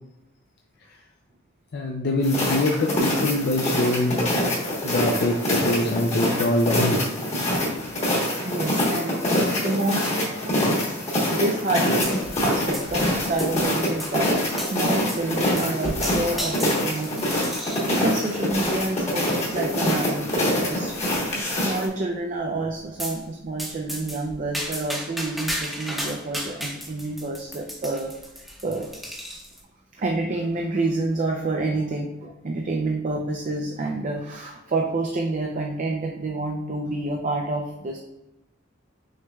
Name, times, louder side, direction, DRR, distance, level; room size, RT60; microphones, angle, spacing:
voice 1, 1.7-4.3 4.8-7.0, left 1 dB, 50° left, 0 dB, 0.4 m, -24 dB
sound 1, 2.2-21.9, left 1 dB, 35° left, 1.2 m, -25 dB
voice 2, 7.4-7.9 8.4-9.1 9.6-14.3 14.6-17.5 17.9-21.0 21.3-28.1 28.4-29.4 29.9-38.0, right 2 dB, 40° right, 1 dB, 0.5 m, -29 dB
sound 2, 12.0-12.5 12.7-13.6 14.0-14.1 14.6-14.8 15.1-15.3 15.6-17.9 18.5-18.9 19.5-19.6 19.9-20.0 20.3-20.4 20.9-21.3 23.0-23.2 23.6-29.6, equal, ahead, 0.8 m, -34 dB
6.4 x 3.2 x 2.3 m, 0.93 s
head